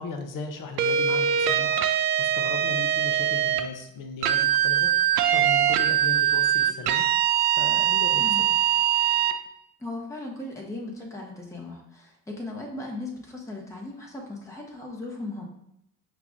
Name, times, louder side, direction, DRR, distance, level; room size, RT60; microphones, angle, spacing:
voice 1, 0.0-1.8 2.2-4.9 5.3-7.1 7.5-8.5, left 4 dB, 40° left, 5 dB, 0.8 m, -37 dB
sound 1, 0.8-3.7 4.2-9.4, right 10 dB, 70° right, 0.5 m, -22 dB
voice 2, 9.8-15.4, left 2 dB, 5° left, -1 dB, 0.9 m, -37 dB
5.8 x 2.4 x 3.7 m, 0.77 s
figure-of-eight pair, 50°, 50 cm